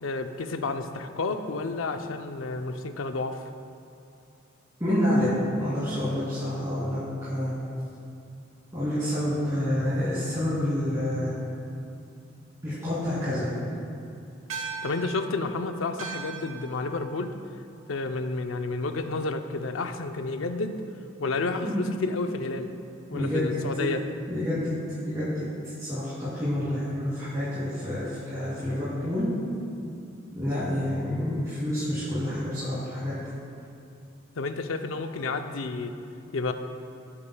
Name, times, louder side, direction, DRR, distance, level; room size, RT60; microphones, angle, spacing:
voice 1, 0.0-3.4 14.8-17.3 17.9-20.8 21.2-22.7 23.1-24.0 34.4-35.9 36.3-36.5, left 3 dB, 80° left, 7 dB, 0.6 m, -30 dB
voice 2, 4.8-5.3 5.6-7.5 8.7-11.3 12.6-13.5 21.6-21.7 23.1-23.9 24.3-24.7 25.0-29.3 30.3-33.3, left 1 dB, 15° right, -13 dB, 2.6 m, -28 dB
sound 1, 14.5-19.2, right 6 dB, 90° right, 1.1 m, -41 dB
17.5 x 8.7 x 2.3 m, 2.6 s
head